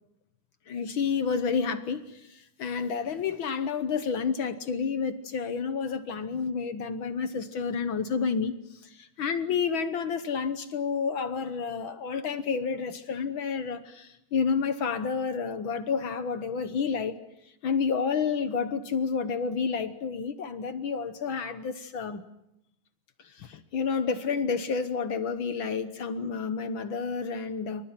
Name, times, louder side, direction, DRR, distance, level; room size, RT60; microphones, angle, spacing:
voice 1, 0.7-17.2 17.6-22.2 23.2-27.8, left 5 dB, 60° left, 11 dB, 1.4 m, -30 dB
28.5 x 24.5 x 6.0 m, 0.83 s
omnidirectional pair, 3.4 m